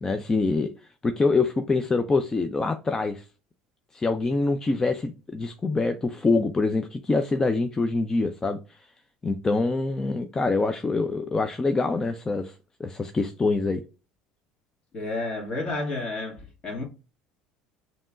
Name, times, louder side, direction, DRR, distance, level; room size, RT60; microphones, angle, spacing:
voice 1, 0.0-0.7 1.0-3.3 3.9-8.9 9.2-12.5 12.8-13.8, left 3 dB, 20° left, 0.5 m, -25 dB
voice 2, 14.9-16.8, left 2 dB, 40° left, 2.0 m, -31 dB
5.2 x 2.9 x 2.4 m
hypercardioid pair, 70°, 3 cm